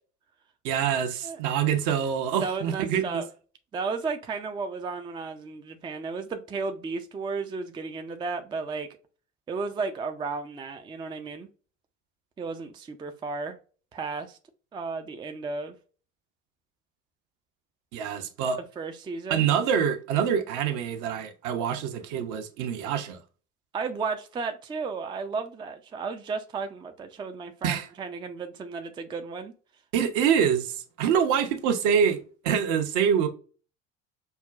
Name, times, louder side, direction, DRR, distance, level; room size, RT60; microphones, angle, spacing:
voice 1, 0.6-3.2 17.9-18.6 19.3-23.2 27.6-27.9 29.9-33.3, right 8 dB, 50° right, 0.8 m, -25 dB
voice 2, 2.3-3.3 3.7-8.9 9.5-11.5 12.4-13.6 13.9-14.4 14.7-15.7 18.8-19.5 23.7-29.5, right 4 dB, 15° right, 0.4 m, -33 dB
5.4 x 2.2 x 2.3 m
figure-of-eight pair, 65°, 37 cm